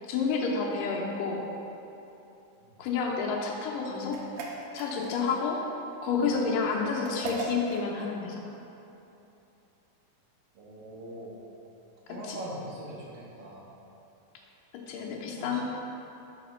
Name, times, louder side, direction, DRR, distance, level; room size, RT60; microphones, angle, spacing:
voice 1, 0.0-1.4 2.8-4.2 4.7-5.6 6.0-8.4 12.1-12.4 14.9-15.6, left 5 dB, 80° left, -1 dB, 2.4 m, -30 dB
sound 1, 4.1-5.4 7.0-7.9, right 3 dB, 80° right, 2.1 m, -37 dB
voice 2, 10.5-11.4 12.1-13.6 15.4-15.6, right 1 dB, 65° right, -4 dB, 1.6 m, -42 dB
4.9 x 4.9 x 5.6 m, 2.9 s
omnidirectional pair, 3.8 m